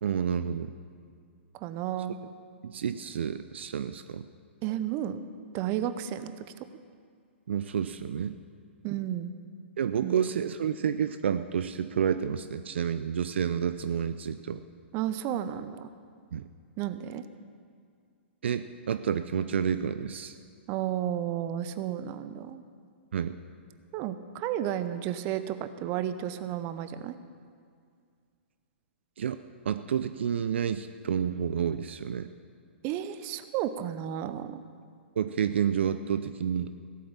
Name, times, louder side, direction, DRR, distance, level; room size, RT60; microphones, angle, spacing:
voice 1, 0.0-0.7 2.6-4.3 7.5-8.3 9.8-14.6 16.3-16.5 18.4-20.3 23.1-23.4 29.2-29.4 29.7-32.3 35.2-36.7, right 8 dB, 65° right, 11 dB, 0.5 m, -29 dB
voice 2, 1.5-2.2 4.6-5.3 5.5-6.7 8.8-9.3 10.0-10.1 14.9-15.9 16.8-17.3 20.7-22.6 23.9-27.2 32.8-34.6, right 11 dB, 35° right, 12 dB, 0.7 m, -32 dB
16.0 x 8.6 x 7.3 m, 2.2 s
figure-of-eight pair, 120°, 7 cm